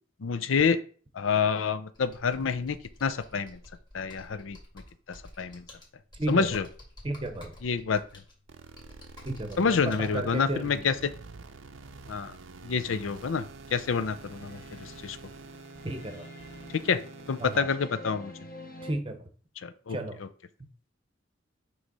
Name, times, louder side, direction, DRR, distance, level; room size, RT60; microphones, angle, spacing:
voice 1, 0.2-0.8 1.1-3.6 3.9-4.6 5.1-5.6 6.3-6.7 7.6-8.0 9.6-11.1 12.1-12.3 12.6-13.4 13.7-15.2 16.7-17.0 17.3-18.3 19.6-20.3, left 5 dB, 85° left, 12 dB, 0.5 m, -28 dB
Computer keyboard, 1.9-10.1, left 1 dB, 25° left, 1.9 m, -51 dB
voice 2, 6.2-6.6 7.0-7.5 9.3-10.8 15.8-16.3 17.4-17.7 18.8-19.2 19.9-20.2, right 1 dB, 25° right, 7 dB, 0.8 m, -33 dB
sound 1, 8.5-17.6, right 3 dB, 80° right, 0.6 m, -47 dB
sound 2, 13.8-18.9, left 1 dB, 45° left, 1.1 m, -48 dB
6.2 x 3.1 x 5.3 m, 0.43 s
head